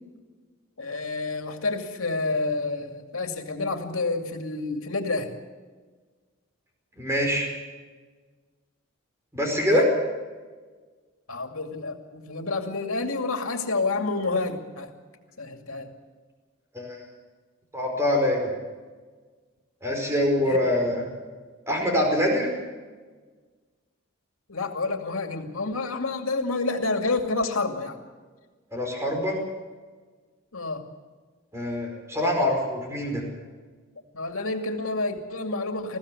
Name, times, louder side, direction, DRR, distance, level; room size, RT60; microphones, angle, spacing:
voice 1, 0.8-5.3 9.5-9.9 11.3-14.9 15.4-15.9 20.4-20.6 24.5-28.0 30.5-30.8 34.1-36.0, left 3 dB, 90° left, 5 dB, 2.5 m, -29 dB
voice 2, 7.0-7.5 9.3-9.8 16.7-17.0 17.7-18.4 19.8-21.0 21.7-22.5 28.7-29.4 31.5-33.2, left 1 dB, 15° right, 1 dB, 5.0 m, -24 dB
20.5 x 15.0 x 8.4 m, 1.4 s
head